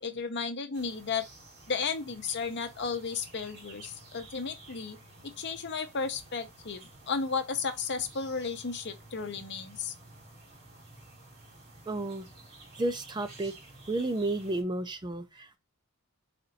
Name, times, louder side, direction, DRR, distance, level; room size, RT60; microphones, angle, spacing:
voice 1, 0.0-1.2 1.7-5.0 5.2-6.8 7.1-9.9, left 5 dB, 50° left, 0.8 m, -34 dB
sound 1, 0.7-14.6, right 2 dB, 50° right, 2.2 m, -52 dB
voice 2, 11.9-12.3 12.8-13.5 13.9-15.6, right 2 dB, 20° right, 0.5 m, -32 dB
4.2 x 2.7 x 4.0 m
head